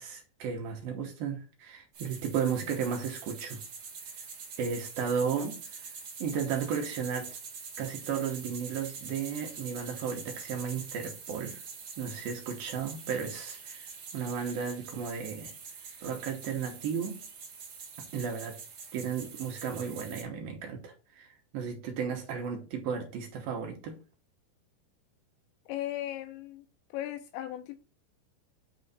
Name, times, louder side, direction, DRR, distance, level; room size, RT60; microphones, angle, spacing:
voice 1, 0.0-3.6 4.2-4.3 4.6-5.9 6.2-7.4 7.8-11.6 12.0-15.5 16.0-17.2 18.1-18.6 18.9-23.9, right 6 dB, 75° right, 2.3 m, -34 dB
sound 1, 1.9-20.2, right 5 dB, 50° right, 2.6 m, -45 dB
voice 2, 25.7-26.7 26.9-27.8, left 13 dB, 85° left, 2.7 m, -37 dB
8.9 x 3.1 x 4.1 m
omnidirectional pair, 5.1 m